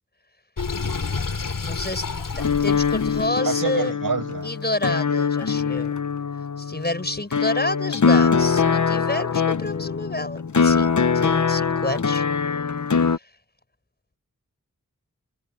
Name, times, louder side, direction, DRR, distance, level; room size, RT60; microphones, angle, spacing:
Sink (filling or washing), 0.6-3.3, left 4 dB, 80° left, 3.4 m, -29 dB
voice 1, 1.6-2.0 2.3-3.9 4.4-5.9 6.6-12.2 12.9-13.1, left 2 dB, 30° left, 6.2 m, -29 dB
sound 1, 2.4-13.2, left 5 dB, 65° left, 1.1 m, -22 dB
voice 2, 3.4-4.5, right 5 dB, 85° right, 6.0 m, -27 dB
wide cardioid pair, 60°, 32 cm